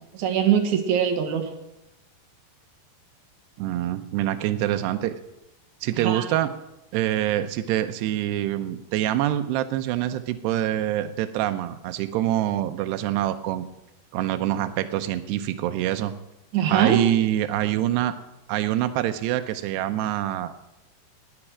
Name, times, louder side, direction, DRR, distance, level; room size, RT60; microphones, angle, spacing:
voice 1, 0.1-1.5 6.0-6.3 16.5-17.0, right 8 dB, 60° right, 5 dB, 2.3 m, -22 dB
voice 2, 3.6-5.2 5.8-6.5 6.9-13.7 14.1-16.1 16.7-18.2 18.5-20.6, right 12 dB, 85° right, 9 dB, 2.8 m, -25 dB
18.5 x 9.1 x 6.1 m, 0.89 s
omnidirectional pair, 4.8 m